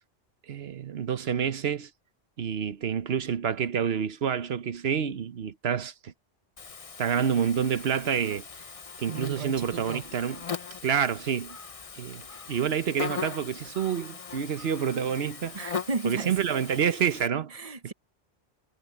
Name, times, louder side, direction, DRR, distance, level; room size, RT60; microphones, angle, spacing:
voice 1, 0.5-1.9 2.4-6.1 7.0-8.4 9.0-10.4 10.8-11.6 12.0-12.2 12.5-15.6 16.0-17.5, right 7 dB, 70° right, 1.1 m, -28 dB
Buzz, 6.6-17.3, left 6 dB, 35° left, 0.9 m, -40 dB
voice 2, 9.1-10.0 15.5-16.3 17.5-17.9, right 4 dB, 35° right, 0.9 m, -34 dB
omnidirectional pair, 1.1 m